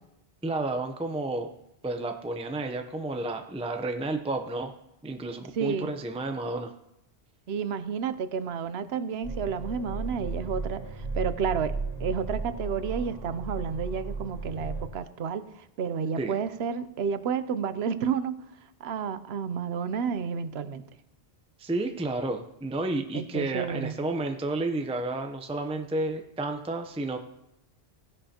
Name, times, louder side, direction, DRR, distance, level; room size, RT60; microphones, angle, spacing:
voice 1, 0.4-1.5 1.8-4.7 5.0-6.7 16.2-16.4 21.6-27.2, right 2 dB, 5° right, 5 dB, 0.6 m, -31 dB
voice 2, 5.5-5.9 7.5-10.8 11.1-18.4 18.8-20.8 23.1-23.9, right 6 dB, 75° right, 13 dB, 0.9 m, -31 dB
sound 1, 9.2-14.9, right 3 dB, 40° right, 2.5 m, -35 dB
16.0 x 10.5 x 2.9 m, 0.84 s
omnidirectional pair, 1.1 m